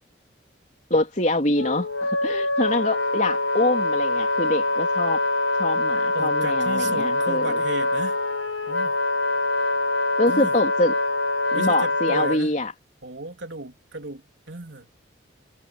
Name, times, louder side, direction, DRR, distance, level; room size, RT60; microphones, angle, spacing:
voice 1, 0.9-5.2 5.6-7.6 10.2-10.9 11.5-12.7, left 1 dB, 40° left, 3.6 m, -25 dB
Wind instrument woodwind instrument, 1.5-12.4, left 2 dB, 85° left, 2.1 m, -24 dB
voice 2, 6.1-8.2 8.7-9.0 10.3-10.5 11.5-12.5 13.0-14.9, right 2 dB, 70° right, 3.5 m, -34 dB
head